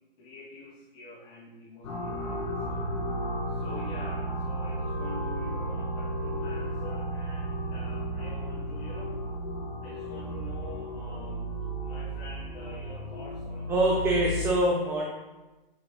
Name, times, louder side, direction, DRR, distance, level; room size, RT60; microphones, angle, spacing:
voice 1, 0.2-2.9 3.5-9.1 9.8-11.4 11.8-14.0, left 2 dB, 20° left, -8 dB, 2.6 m, -46 dB
sound 1, 1.8-14.5, equal, 35° left, 2.4 m, -34 dB
voice 2, 13.7-15.1, right 2 dB, 10° right, -3 dB, 0.8 m, -24 dB
9.5 x 7.4 x 2.3 m, 1.1 s
figure-of-eight pair, 135°, 30 cm